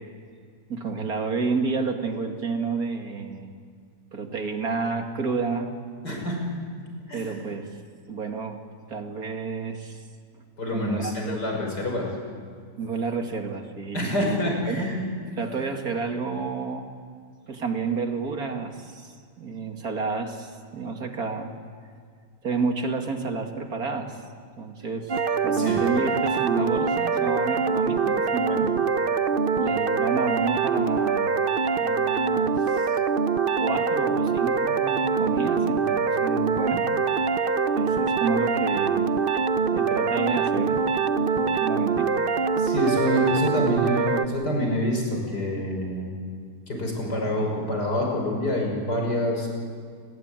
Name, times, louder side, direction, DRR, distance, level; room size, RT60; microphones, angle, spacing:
voice 1, 0.7-3.5 4.1-5.7 7.1-7.7 8.1-8.6 8.9-10.0 10.7-11.4 12.8-14.9 15.4-16.9 17.5-21.5 22.4-24.2 24.6-28.8 29.6-31.4 31.8-32.9 33.6-36.9 37.7-39.1 39.7-40.8 41.3-42.1, right 4 dB, 65° right, 4 dB, 2.7 m, -30 dB
voice 2, 6.0-6.4 7.1-7.4 10.6-12.1 13.9-15.0 15.6-15.7 25.5-25.9 42.6-46.1 46.7-49.6, left 1 dB, 80° left, 1 dB, 6.4 m, -27 dB
sound 1, 25.1-44.3, right 5 dB, 40° right, 0.9 m, -24 dB
29.5 x 20.5 x 9.0 m, 2.1 s
omnidirectional pair, 1.7 m